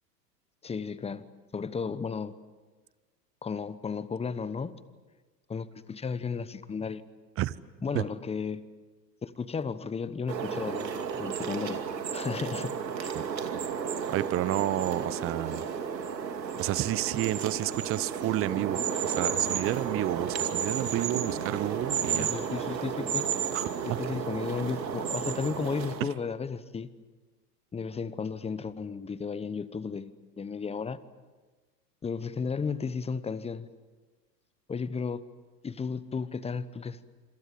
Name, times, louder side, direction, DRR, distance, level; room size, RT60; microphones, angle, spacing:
voice 1, 0.6-1.3 1.5-2.3 3.4-4.8 5.5-7.0 7.8-8.6 9.2-11.8 12.1-13.1 22.2-23.3 23.8-26.9 27.7-31.0 32.0-33.7 34.7-35.2 35.6-37.0, left 5 dB, 10° left, 16 dB, 1.0 m, -34 dB
sound 1, 10.3-26.0, right 7 dB, 85° right, 2.7 m, -32 dB
voice 2, 13.1-13.5 14.1-15.7 16.6-22.3 23.5-24.0 26.0-26.1, right 14 dB, 25° right, 18 dB, 0.8 m, -30 dB
27.5 x 26.5 x 7.6 m, 1.3 s
hypercardioid pair, 100°, 50 cm